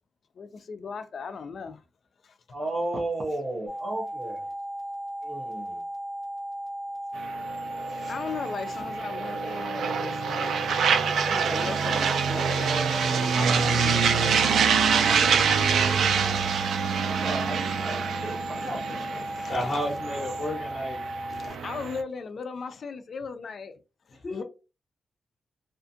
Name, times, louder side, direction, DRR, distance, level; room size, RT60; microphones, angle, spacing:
voice 1, 0.4-1.8 2.2-2.4 7.9-10.9 11.3-14.3 18.2-19.8 21.3-23.7 24.1-24.4, left 5 dB, 45° left, 0.3 m, -38 dB
voice 2, 2.5-4.4 5.2-5.8 16.9-19.0, right 2 dB, 35° right, 0.5 m, -34 dB
sound 1, 3.7-21.5, right 1 dB, 15° right, 1.2 m, -36 dB
sound 2, 7.2-22.0, right 6 dB, 85° right, 0.3 m, -26 dB
voice 3, 19.5-21.0 24.1-24.4, left 1 dB, 20° left, 1.1 m, -31 dB
2.4 x 2.4 x 2.5 m
wide cardioid pair, 180°, 0 cm